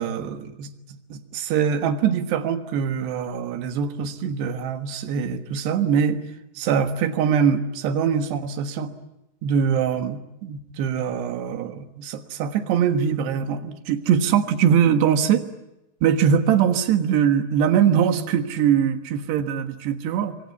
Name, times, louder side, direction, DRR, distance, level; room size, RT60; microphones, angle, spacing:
voice 1, 0.0-6.2 6.6-8.9 9.4-15.5 16.0-20.4, right 8 dB, 70° right, 8 dB, 3.5 m, -22 dB
26.0 x 24.0 x 8.5 m, 0.89 s
omnidirectional pair, 5.2 m